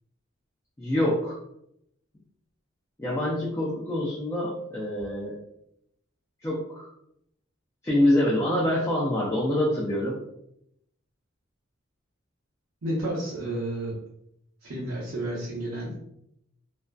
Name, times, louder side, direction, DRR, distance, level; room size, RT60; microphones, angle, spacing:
voice 1, 0.8-1.4 3.0-5.3 6.4-6.9 7.8-10.2, left 1 dB, 15° left, -6 dB, 0.4 m, -25 dB
voice 2, 12.8-13.9 14.6-15.9, right 1 dB, 85° right, -8 dB, 0.7 m, -31 dB
2.4 x 2.3 x 2.2 m, 0.76 s
head